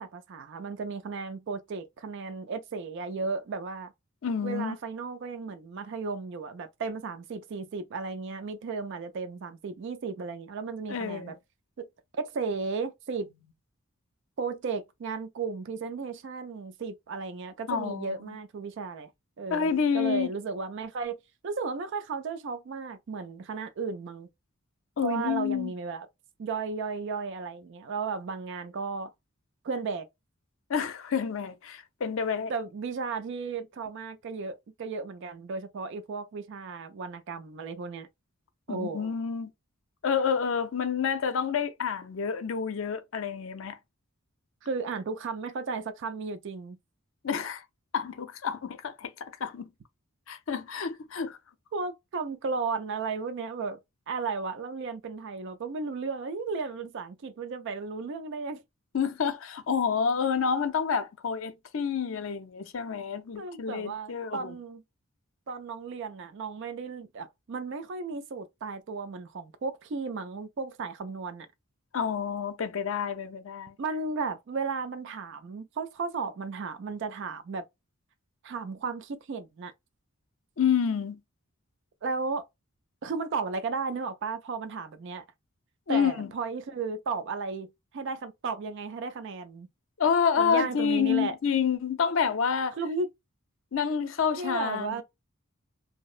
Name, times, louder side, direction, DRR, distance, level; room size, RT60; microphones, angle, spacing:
voice 1, 0.0-3.9 4.4-11.3 11.8-11.9 12.1-13.3 14.4-19.1 19.4-24.3 25.0-26.1 26.4-29.1 29.6-30.1 32.5-38.1 38.7-39.1 44.6-46.8 51.7-53.8 54.1-58.6 63.4-64.8 65.5-71.5 73.8-77.6 78.4-79.7 82.0-82.4 83.0-85.2 85.9-87.7 87.9-89.7 90.4-91.4 92.8-93.1 94.4-95.0, right 4 dB, 60° right, 0.4 m, -34 dB
voice 2, 4.2-4.8 10.9-11.4 17.7-18.4 19.5-20.3 25.0-25.7 30.7-32.5 38.7-39.5 40.0-43.8 47.2-47.6 47.9-49.7 50.3-51.4 58.9-64.6 71.9-73.8 80.6-81.2 85.9-86.3 90.0-92.8 93.7-95.0, left 6 dB, 65° left, 0.5 m, -28 dB
2.7 x 2.0 x 2.4 m
head